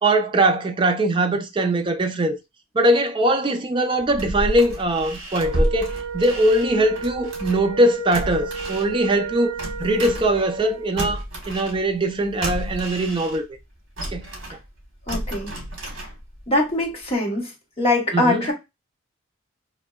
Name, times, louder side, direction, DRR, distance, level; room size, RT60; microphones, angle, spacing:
voice 1, 0.0-2.3 2.7-13.4 14.1-14.3 18.1-18.5, right 1 dB, 25° right, 0.4 m, -21 dB
sound 1, 4.0-7.8 8.1-10.7 11.0-13.6 14.0-16.5 16.8-16.9, right 1 dB, 55° right, 1.3 m, -30 dB
Wind instrument woodwind instrument, 5.4-11.0, right 5 dB, 70° right, 0.5 m, -33 dB
voice 2, 15.1-15.5 16.5-17.5 17.8-18.5, left 2 dB, 25° left, 0.9 m, -22 dB
3.1 x 2.6 x 2.2 m
head